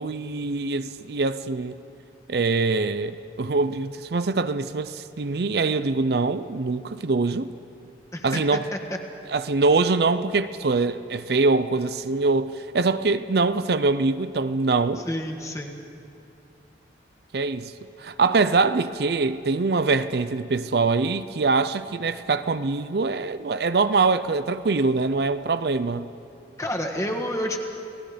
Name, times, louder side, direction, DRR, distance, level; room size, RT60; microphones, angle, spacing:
voice 1, 0.0-1.8 2.3-7.5 8.2-8.7 9.3-15.0 17.3-17.7 18.0-26.1, right 3 dB, 60° right, 0.5 m, -23 dB
voice 2, 15.0-15.8 26.6-27.6, equal, 15° left, 1.6 m, -29 dB
30.0 x 18.0 x 5.1 m
head